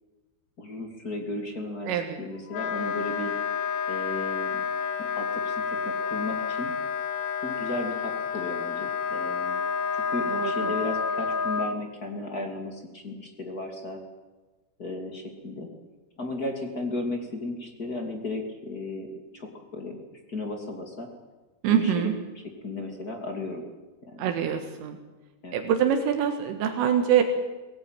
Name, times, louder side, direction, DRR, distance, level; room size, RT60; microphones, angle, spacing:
voice 1, 0.6-1.9 2.2-3.3 3.9-4.6 5.0-6.7 7.4-9.6 9.9-14.0 14.8-15.7 16.2-21.1 21.7-22.1 22.6-23.7 24.1-24.3 25.4-25.6, left 2 dB, 30° left, 3 dB, 1.7 m, -35 dB
voice 2, 1.9-2.2 10.3-10.7 21.6-22.2 24.2-25.0 25.5-27.2, right 9 dB, 80° right, 5 dB, 4.1 m, -24 dB
Wind instrument woodwind instrument, 2.5-11.7, left 6 dB, 75° left, 3.8 m, -29 dB
22.5 x 18.5 x 9.1 m, 1.2 s
omnidirectional pair, 5.8 m